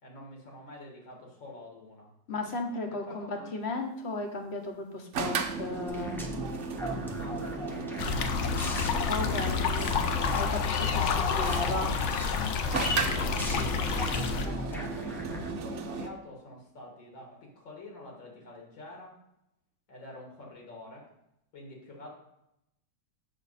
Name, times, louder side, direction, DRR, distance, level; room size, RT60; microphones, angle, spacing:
voice 1, 0.0-2.1 2.9-3.5 7.2-8.8 10.9-11.9 13.1-19.2 19.9-21.1 21.5-22.1, left 1 dB, 90° left, -1 dB, 2.6 m, -47 dB
voice 2, 2.3-6.2 9.1-9.9 10.3-11.9, left 2 dB, 45° left, 3 dB, 1.0 m, -35 dB
sound 1, 5.1-10.6 12.7-16.1, right 5 dB, 65° right, 0.7 m, -35 dB
sound 2, 5.9-15.5, equal, 5° left, 0.4 m, -38 dB
sound 3, 8.0-14.4, left 6 dB, 70° left, 0.6 m, -29 dB
7.0 x 6.2 x 4.1 m, 0.83 s
omnidirectional pair, 2.0 m